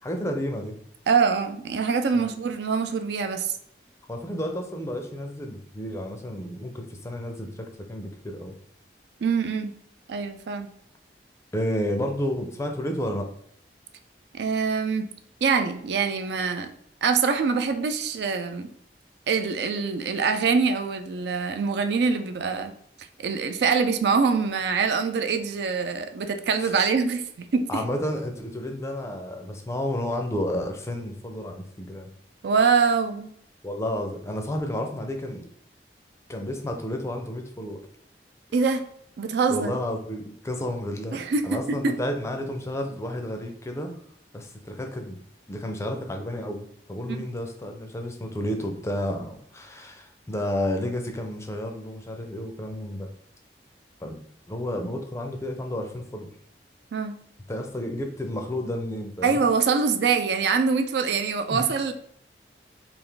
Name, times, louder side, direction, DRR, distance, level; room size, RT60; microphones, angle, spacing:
voice 1, 0.0-0.7 4.1-8.6 11.5-13.3 26.6-26.8 27.7-32.1 33.6-35.4 36.3-37.8 39.5-43.9 44.3-45.2 45.5-53.1 54.0-54.2 54.5-56.3 57.5-59.4 61.5-61.7, left 1 dB, 15° left, 4 dB, 0.4 m, -31 dB
voice 2, 1.1-3.5 9.2-9.7 10.1-10.7 14.3-15.1 15.4-16.7 17.0-18.7 19.3-22.7 23.2-27.8 32.4-33.3 38.5-38.8 39.2-39.7 41.1-41.9 47.1-47.2 56.9-57.2 59.2-61.9, right 5 dB, 70° right, 8 dB, 0.4 m, -24 dB
3.4 x 2.5 x 3.8 m, 0.68 s
head